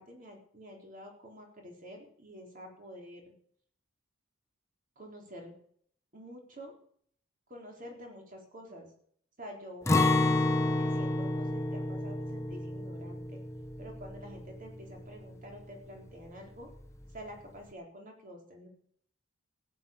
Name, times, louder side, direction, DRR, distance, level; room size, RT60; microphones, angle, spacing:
voice 1, 0.0-3.3 5.0-5.5 6.1-6.7 7.5-8.9 9.4-10.4 10.7-13.4 13.8-16.7 17.1-18.7, equal, 40° right, 1 dB, 4.0 m, -48 dB
Acoustic guitar, 9.9-15.8 16.1-16.2 16.7-17.2, left 2 dB, 15° left, 1.2 m, -30 dB
15.0 x 9.5 x 7.3 m, 0.62 s
head